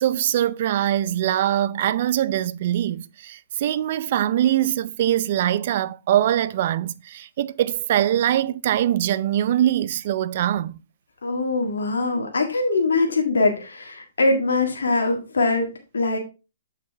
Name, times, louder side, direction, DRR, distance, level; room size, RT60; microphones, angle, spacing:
voice 1, 0.0-10.8, right 11 dB, 50° right, 0.5 m, -22 dB
voice 2, 11.2-16.2, left 3 dB, 85° left, 1.7 m, -22 dB
7.5 x 5.7 x 3.4 m
hypercardioid pair, 145°, 0 cm